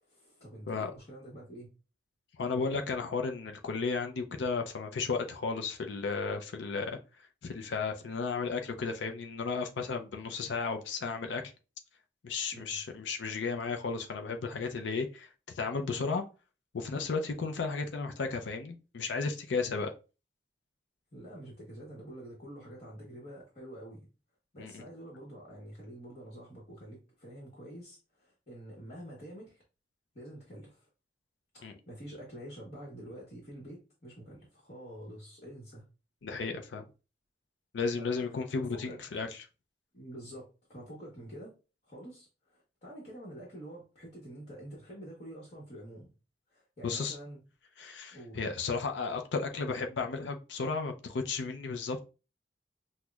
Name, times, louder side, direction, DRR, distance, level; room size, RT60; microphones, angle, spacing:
voice 1, 0.0-1.7 12.5-12.8 21.1-24.1 24.5-29.6 30.1-30.9 31.5-35.9 37.9-39.0 39.9-41.5 41.8-46.1 46.5-47.4 48.1-48.4, right 1 dB, 40° left, -5 dB, 1.1 m, -47 dB
voice 2, 2.4-7.0 7.4-11.4 12.2-15.3 15.6-16.2 16.7-19.9 24.6-24.8 31.6-31.7 36.2-36.8 37.7-39.3 46.8-47.2 47.8-52.1, left 4 dB, 90° left, 5 dB, 0.5 m, -34 dB
5.9 x 2.1 x 2.3 m, 0.32 s
head